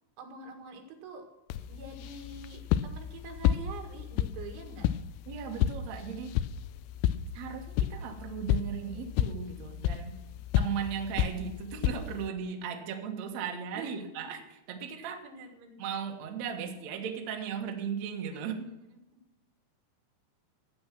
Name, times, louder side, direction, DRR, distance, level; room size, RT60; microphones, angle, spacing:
voice 1, 0.2-1.3 1.6-4.9 13.7-14.1 15.0-15.8 18.3-18.7, right 3 dB, 80° right, 4 dB, 4.4 m, -45 dB
sound 1, 1.5-12.3, left 11 dB, 90° left, 3.0 m, -32 dB
voice 2, 5.3-6.4 7.3-10.2 10.6-14.4 14.7-15.2 15.8-18.7, right 7 dB, 60° right, 3 dB, 1.8 m, -37 dB
15.0 x 8.7 x 6.0 m, 0.94 s
omnidirectional pair, 5.4 m